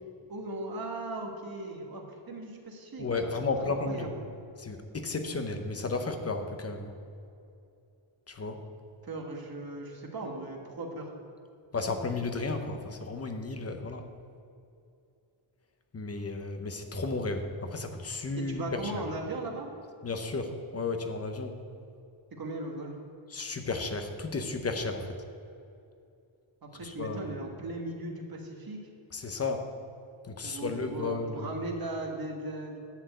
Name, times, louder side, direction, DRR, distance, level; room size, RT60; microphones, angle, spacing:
voice 1, 0.3-4.1 9.0-11.1 18.3-19.7 22.3-23.0 26.6-28.8 30.4-32.8, right 2 dB, 45° right, 1 dB, 1.4 m, -38 dB
voice 2, 3.0-4.1 4.6-6.9 8.3-8.6 11.7-14.0 15.9-19.0 20.0-21.6 23.3-25.1 26.8-27.3 29.1-29.6 30.4-31.5, left 3 dB, 30° left, 6 dB, 0.7 m, -33 dB
11.5 x 4.4 x 8.1 m, 2.6 s
wide cardioid pair, 170°, 50 cm